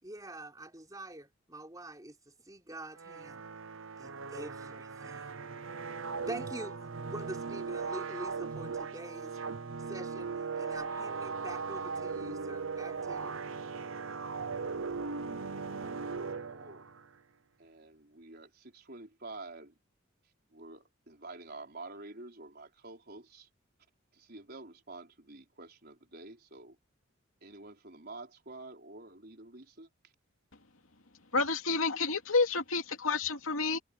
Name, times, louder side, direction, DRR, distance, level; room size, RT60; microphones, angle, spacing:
voice 1, 0.0-3.4 4.0-5.4 6.3-9.4 9.9-13.4 14.4-14.5, right 1 dB, 20° right, 4.1 m, -45 dB
sound 1, 3.0-17.1, right 4 dB, 75° right, 0.9 m, -38 dB
voice 2, 15.7-16.8 17.6-19.8 20.5-23.5 24.1-26.8 27.4-29.9, right 2 dB, 50° right, 4.6 m, -49 dB
voice 3, 31.3-33.8, left 4 dB, 90° left, 2.7 m, -29 dB
head